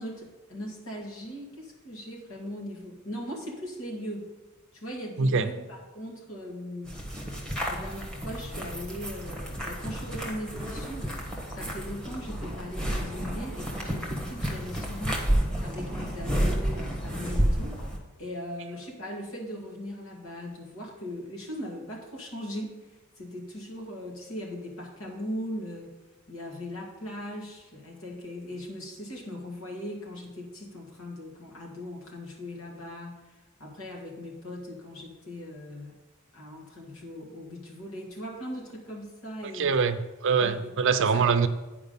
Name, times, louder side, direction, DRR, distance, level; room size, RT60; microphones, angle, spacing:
voice 1, 0.0-4.3 4.7-7.0 7.7-11.2 11.5-15.2 15.6-17.8 18.2-22.8 23.2-25.9 26.3-33.2 33.6-36.0 36.3-39.7 40.3-41.3, equal, 75° left, -2 dB, 2.2 m, -39 dB
sound 1, 6.8-18.0, equal, 5° left, 1.3 m, -31 dB
voice 2, 39.5-41.5, right 5 dB, 60° right, 10 dB, 0.6 m, -24 dB
9.6 x 4.8 x 5.3 m, 1.1 s
head